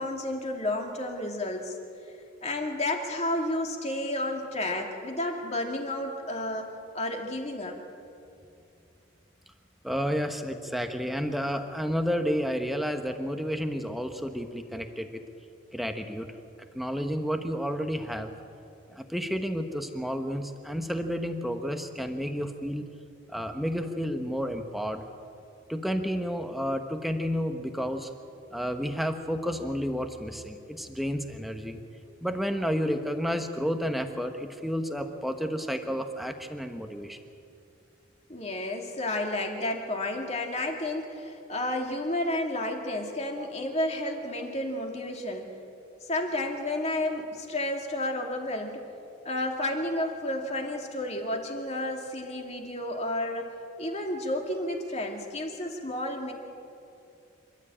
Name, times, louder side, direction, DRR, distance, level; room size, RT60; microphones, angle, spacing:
voice 1, 0.0-1.8 2.4-6.7 6.9-7.8 38.3-45.5 46.0-48.8 49.2-53.5 53.8-56.3, left 1 dB, 30° left, 2 dB, 2.5 m, -31 dB
voice 2, 9.8-15.2 15.7-16.3 16.7-18.3 18.9-22.9 23.3-25.0 25.7-28.1 28.5-31.8 32.2-37.2, equal, ahead, 5 dB, 1.1 m, -31 dB
27.5 x 12.5 x 8.8 m, 2.6 s
head